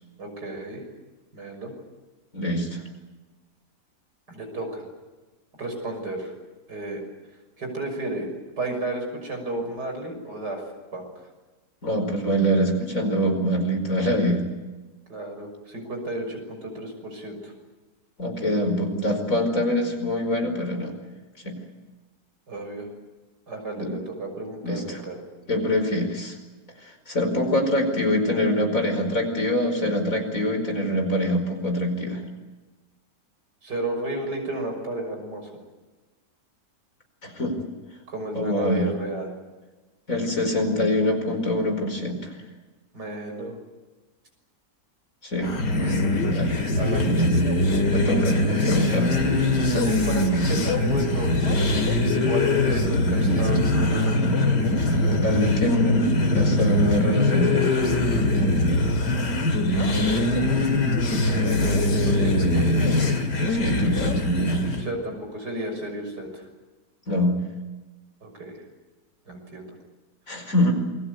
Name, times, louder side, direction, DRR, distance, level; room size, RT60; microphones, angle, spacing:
voice 1, 0.2-0.8 1.3-1.7 4.3-4.9 5.6-6.3 6.7-7.0 7.6-8.3 8.6-10.6 10.9-11.1 15.1-17.5 22.5-22.9 23.5-25.2 33.6-35.5 38.1-39.3 42.9-43.6 46.7-47.4 49.6-54.7 59.7-60.3 61.1-63.1 64.8-66.4 68.2-68.6 69.3-69.7, right 1 dB, 80° right, 4 dB, 6.9 m, -33 dB
voice 2, 2.3-2.8 11.8-14.4 18.2-20.9 21.4-21.6 23.8-23.9 24.6-25.0 25.5-26.3 27.1-32.2 37.2-37.5 38.4-38.9 40.1-42.3 45.2-45.6 46.2-46.6 47.9-48.4 48.7-49.2 55.2-56.1 56.3-57.8 63.5-64.2 67.1-67.4 70.3-70.7, left 1 dB, 50° left, 5 dB, 5.3 m, -24 dB
sound 1, 45.4-64.9, left 1 dB, 85° left, 3.1 m, -22 dB
28.0 x 22.0 x 8.2 m, 1.2 s
omnidirectional pair, 1.8 m